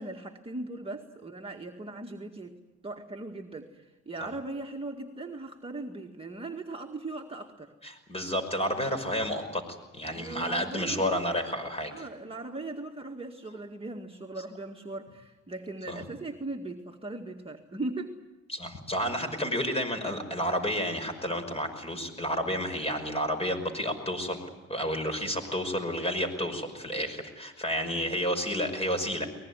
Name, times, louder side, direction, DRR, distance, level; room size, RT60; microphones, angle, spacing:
voice 1, 0.0-2.5 2.8-7.7 10.1-11.2 11.9-18.2, right 2 dB, 20° right, 1 dB, 2.0 m, -39 dB
voice 2, 7.8-9.6 9.9-12.1 15.9-16.0 18.5-24.4 24.7-29.3, equal, 20° left, 7 dB, 5.7 m, -31 dB
23.0 x 20.5 x 9.8 m, 1.1 s
cardioid pair, 90°, 30 cm